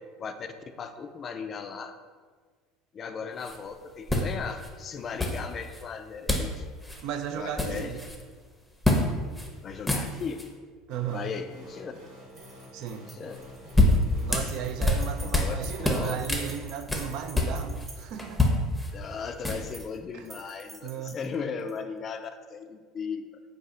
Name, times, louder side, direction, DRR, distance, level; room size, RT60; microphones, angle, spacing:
voice 1, 0.2-2.0 2.9-6.7 7.3-7.9 9.6-10.4 11.1-11.9 13.1-13.5 15.2-16.1 18.9-23.3, left 6 dB, 40° left, 8 dB, 0.3 m, -37 dB
sound 1, 3.4-3.6 4.1-4.7 5.2-5.8 6.3-6.6 6.8-7.0 7.3-8.2 8.8-9.1 9.4-9.5 9.8-10.5 13.3-15.6 15.8-17.9 18.2-19.8, left 2 dB, 10° left, 0.6 m, -26 dB
voice 2, 7.0-8.0 10.9-11.3 12.7-13.1 14.2-18.5 20.1-20.3 20.8-21.2, right 8 dB, 65° right, 8 dB, 0.3 m, -35 dB
sound 2, 10.9-16.0, left 2 dB, 90° right, 1.3 m, -47 dB
sound 3, 12.3-18.4 19.5-20.0 20.2-21.8, right 2 dB, 30° right, 0.6 m, -49 dB
4.1 x 2.3 x 3.6 m, 1.5 s
hypercardioid pair, 80°, 0 cm